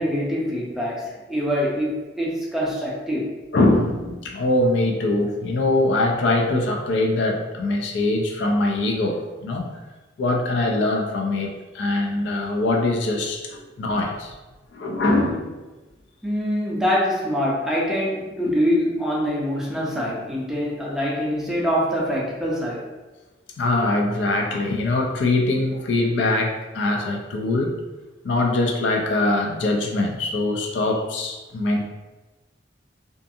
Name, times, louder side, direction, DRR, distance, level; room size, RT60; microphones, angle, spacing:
voice 1, 0.0-3.4 16.2-22.8, equal, ahead, -5 dB, 0.4 m, -24 dB
voice 2, 3.5-9.7 10.2-14.3 14.7-15.6 23.6-27.8 28.2-31.9, left 2 dB, 70° left, 1 dB, 0.4 m, -22 dB
2.5 x 2.5 x 2.6 m, 1.2 s
head